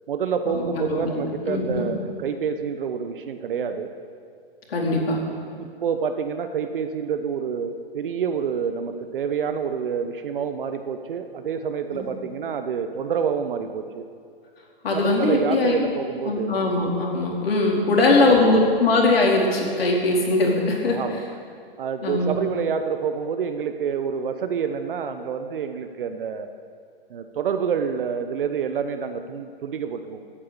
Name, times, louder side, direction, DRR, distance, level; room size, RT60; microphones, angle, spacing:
voice 1, 0.1-3.9 5.6-14.1 14.9-16.5 17.9-18.6 20.9-21.2 21.8-26.5 27.1-30.2, right 6 dB, 60° right, 8 dB, 1.1 m, -27 dB
voice 2, 0.9-1.9 4.7-5.2 11.9-12.1 14.8-15.7 16.2-21.2 22.0-22.4, left 2 dB, 70° left, -1 dB, 4.2 m, -21 dB
14.5 x 9.6 x 8.4 m, 2.2 s
hypercardioid pair, 130°, 31 cm